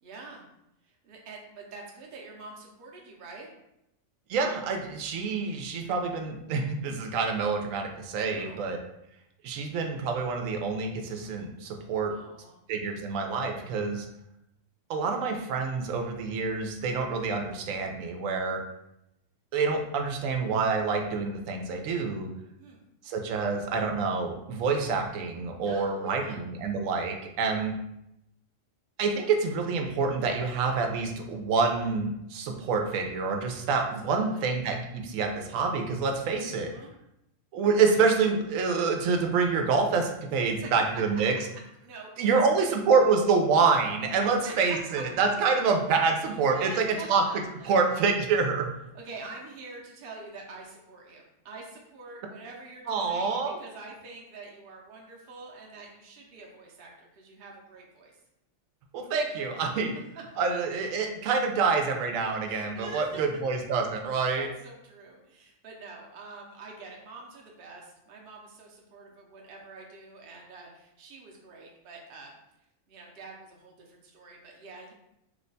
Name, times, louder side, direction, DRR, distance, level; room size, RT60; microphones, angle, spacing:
voice 1, 0.0-0.4 0.8-3.5 8.3-8.6 12.1-12.6 22.6-22.8 25.6-26.4 33.7-34.5 36.5-36.9 41.8-42.4 44.2-45.0 46.2-47.8 48.9-58.2 59.5-59.8 62.4-63.2 64.4-72.3 72.9-74.9, right 3 dB, 55° right, -1 dB, 0.7 m, -46 dB
voice 2, 4.3-8.8 9.4-12.1 12.7-14.1 14.9-18.6 19.5-22.3 23.0-27.7 29.0-36.7 37.5-41.3 42.2-47.2 47.7-48.7 52.9-53.6 58.9-59.9 60.4-64.5, right 4 dB, 90° right, 3 dB, 1.0 m, -27 dB
3.0 x 2.2 x 3.9 m, 0.83 s
omnidirectional pair, 1.3 m